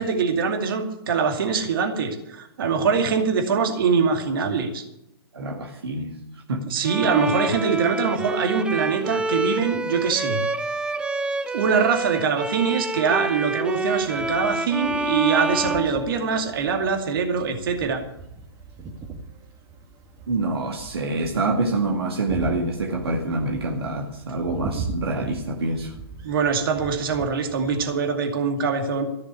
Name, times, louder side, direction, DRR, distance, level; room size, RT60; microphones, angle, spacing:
voice 1, 0.0-4.8 6.7-10.4 11.5-18.0 26.2-29.1, right 5 dB, 60° right, 4 dB, 2.4 m, -23 dB
voice 2, 5.3-6.1 6.5-6.6 20.3-25.9, right 2 dB, 75° right, 1 dB, 2.1 m, -26 dB
Bowed string instrument, 6.8-16.7, right 2 dB, 5° right, 0.6 m, -28 dB
sound 1, 14.0-27.9, right 4 dB, 25° right, 1.9 m, -39 dB
14.5 x 6.7 x 9.6 m, 0.82 s
hypercardioid pair, 120°, 13 cm